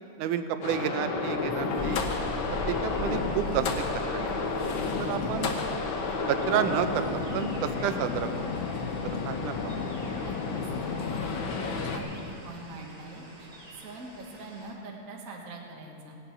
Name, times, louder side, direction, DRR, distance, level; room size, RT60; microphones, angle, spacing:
voice 1, 0.2-2.1 2.5-3.7 3.9-4.3 5.0-5.5 6.3-7.1 7.3-8.5 9.0-9.8, right 9 dB, 80° right, 9 dB, 2.1 m, -30 dB
sound 1, 0.6-12.0, left 4 dB, 85° left, 1.1 m, -31 dB
sound 2, 1.8-14.7, left 1 dB, 20° right, 2.9 m, -42 dB
voice 2, 10.2-11.3 11.7-13.5 13.8-16.1, right 2 dB, 40° right, -1 dB, 1.2 m, -44 dB
17.0 x 10.5 x 5.9 m, 2.8 s
omnidirectional pair, 3.8 m